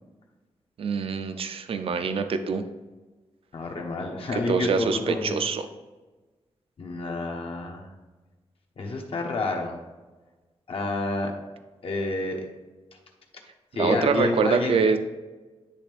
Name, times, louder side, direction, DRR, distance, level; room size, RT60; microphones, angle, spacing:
voice 1, 0.8-2.7 4.3-5.7 13.8-15.0, right 5 dB, 60° right, 9 dB, 0.5 m, -25 dB
voice 2, 3.5-5.4 6.8-7.9 8.8-9.7 10.7-11.3 11.8-12.5 13.7-14.7, left 2 dB, 60° left, 2 dB, 1.0 m, -29 dB
10.0 x 3.4 x 3.4 m, 1.2 s
wide cardioid pair, 160°, 11 cm